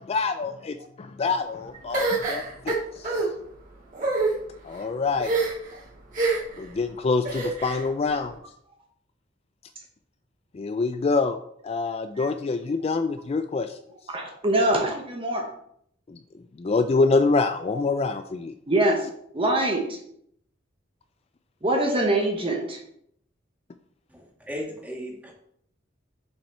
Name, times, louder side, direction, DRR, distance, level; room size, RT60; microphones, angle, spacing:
voice 1, 0.0-3.3 4.6-5.3 6.6-8.3 10.5-11.4 11.6-13.8 16.1-16.2 16.6-18.5, left 4 dB, 30° left, 9 dB, 0.3 m, -26 dB
sound 1, 1.9-3.3 3.9-4.3 5.2-5.7 6.1-6.6 7.2-7.8, right 3 dB, 45° right, 3.5 m, -26 dB
voice 2, 14.1-15.5 17.7-17.8 18.7-19.0 19.3-20.0 21.6-22.8, right 1 dB, 30° right, 1 dB, 1.0 m, -24 dB
voice 3, 24.1-25.3, equal, 10° right, -3 dB, 2.1 m, -36 dB
7.3 x 5.5 x 4.4 m, 0.70 s
head